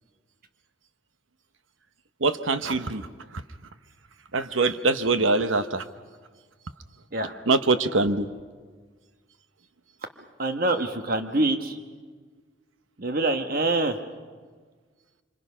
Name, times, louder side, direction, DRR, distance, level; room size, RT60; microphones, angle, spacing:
voice 1, 2.2-3.4 4.3-5.9 7.2-8.3, right 3 dB, 90° right, 10 dB, 1.0 m, -24 dB
voice 2, 10.4-11.8 13.0-14.0, right 2 dB, 50° right, 6 dB, 1.2 m, -25 dB
26.0 x 26.0 x 5.7 m, 1.5 s
head